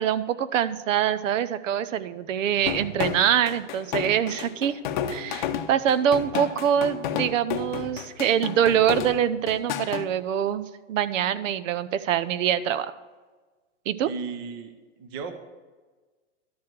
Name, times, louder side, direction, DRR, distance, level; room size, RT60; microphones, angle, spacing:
voice 1, 0.0-4.8 5.1-12.9 13.9-14.1, right 9 dB, 90° right, 14 dB, 0.8 m, -24 dB
sound 1, 2.7-10.0, left 8 dB, 40° left, 0.6 m, -31 dB
voice 2, 6.3-6.9 14.0-15.4, right 5 dB, 20° right, 8 dB, 0.4 m, -36 dB
12.0 x 4.8 x 7.4 m, 1.3 s
supercardioid pair, 175°, 37 cm